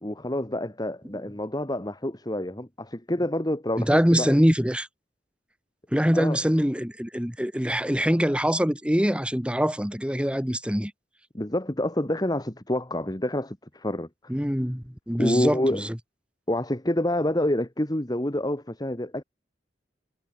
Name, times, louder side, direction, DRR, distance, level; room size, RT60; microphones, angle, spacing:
voice 1, 0.0-4.4 6.1-6.4 11.3-14.1 15.1-15.8 16.5-19.2, left 1 dB, 20° left, 2.0 m, -27 dB
voice 2, 3.8-4.9 5.9-10.9 14.3-15.9, equal, 5° right, 2.6 m, -24 dB
head